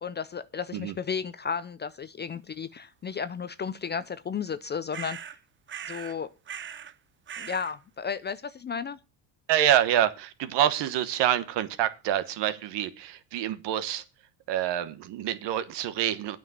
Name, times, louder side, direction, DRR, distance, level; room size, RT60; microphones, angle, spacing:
voice 1, 0.0-5.4 5.8-6.3 7.4-9.0, left 6 dB, 25° left, 14 dB, 0.4 m, -33 dB
sound 1, 4.9-5.4 5.7-6.2 6.5-6.9 7.3-7.7, right 8 dB, 25° right, 0.6 m, -39 dB
voice 2, 9.5-14.0 14.5-16.4, right 11 dB, 60° right, 13 dB, 1.2 m, -26 dB
9.1 x 6.0 x 7.3 m, 0.31 s
supercardioid pair, 100°, 47 cm